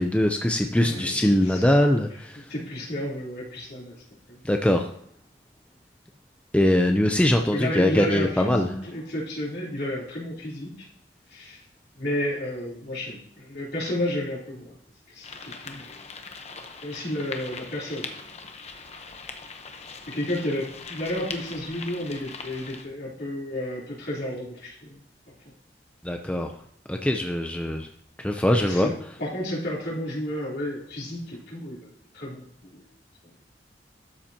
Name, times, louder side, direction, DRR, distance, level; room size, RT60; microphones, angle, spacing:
voice 1, 0.0-2.4 4.4-4.9 6.5-8.7 26.0-26.5 26.9-27.9 28.2-28.9, left 1 dB, 5° left, 3 dB, 0.6 m, -22 dB
voice 2, 0.8-1.7 2.4-3.9 4.3-4.4 7.5-10.9 11.3-11.6 12.0-14.8 15.1-16.1 16.8-18.1 20.1-25.0 28.6-28.9 29.2-32.9, left 1 dB, 65° left, -6 dB, 3.5 m, -32 dB
sound 1, 15.2-22.8, left 4 dB, 40° left, 0.9 m, -41 dB
12.5 x 7.2 x 2.9 m, 0.67 s
head